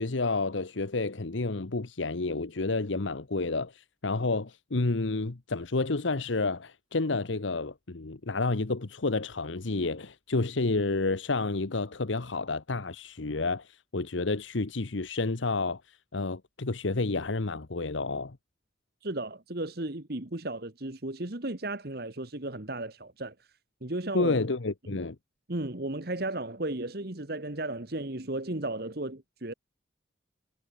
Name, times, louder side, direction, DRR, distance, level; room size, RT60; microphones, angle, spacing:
voice 1, 0.0-18.4 24.1-25.2, left 3 dB, 80° left, 1.1 m, -30 dB
voice 2, 19.0-23.3 23.8-24.4 25.5-29.5, right 2 dB, 55° right, 1.6 m, -34 dB
head